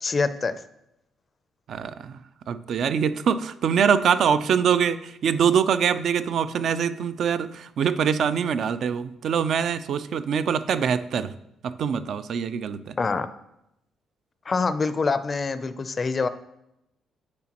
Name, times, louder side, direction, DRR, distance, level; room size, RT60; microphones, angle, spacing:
voice 1, 0.0-0.6 13.0-13.3 14.5-16.3, left 4 dB, 35° left, 12 dB, 0.4 m, -25 dB
voice 2, 1.7-2.2 2.5-11.3 11.6-13.0, right 7 dB, 65° right, 13 dB, 0.3 m, -24 dB
9.5 x 4.2 x 2.9 m, 0.83 s
cardioid pair, 90°, 0 cm